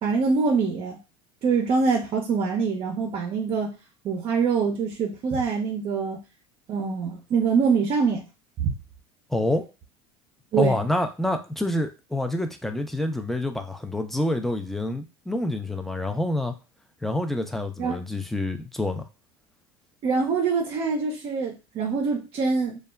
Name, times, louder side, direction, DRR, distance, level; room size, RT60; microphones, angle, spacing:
voice 1, 0.0-1.0 1.4-3.8 4.0-6.2 6.7-8.2 8.6-8.7 10.5-10.8 17.8-18.0 20.0-22.8, right 5 dB, 45° right, 0.6 m, -24 dB
voice 2, 9.3-9.6 10.6-16.5 17.0-19.0, left 1 dB, ahead, 0.4 m, -27 dB
2.2 x 2.0 x 3.4 m
supercardioid pair, 95°, 14 cm